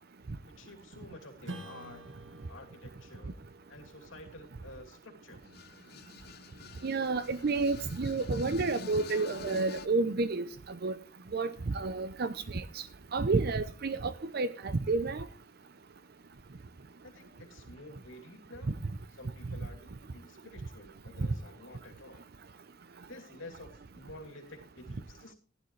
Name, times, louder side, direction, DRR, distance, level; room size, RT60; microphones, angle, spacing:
voice 1, 0.6-2.0 2.5-3.4 3.7-5.4 17.0-18.7 19.2-22.2 23.1-25.3, left 1 dB, 85° left, 2.8 m, -50 dB
Strum, 1.4-6.4, right 1 dB, 75° right, 1.6 m, -50 dB
sound 1, 5.4-9.9, left 5 dB, 55° left, 0.7 m, -47 dB
voice 2, 6.8-10.5 10.8-11.0 11.3-12.8 13.1-15.3, right 3 dB, 50° right, 0.6 m, -30 dB
15.0 x 11.0 x 3.2 m
head